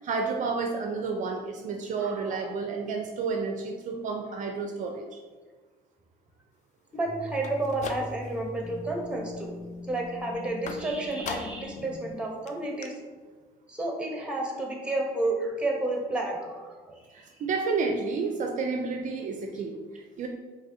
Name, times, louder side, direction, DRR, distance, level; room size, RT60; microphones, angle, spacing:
voice 1, 0.0-5.2 17.1-20.3, right 4 dB, 50° right, 2 dB, 0.4 m, -31 dB
voice 2, 2.0-2.5 6.9-9.5 9.9-12.9 13.7-17.1, right 2 dB, 5° right, 0 dB, 0.7 m, -31 dB
sound 1, 7.0-12.1, left 2 dB, 15° left, 1.1 m, -42 dB
sound 2, 7.3-8.5 8.9-9.4 10.7-11.8 12.1-12.2 12.5-12.6 12.8-12.9, left 5 dB, 45° left, 0.4 m, -40 dB
4.0 x 2.7 x 2.6 m, 1.4 s
cardioid pair, 110°, 17 cm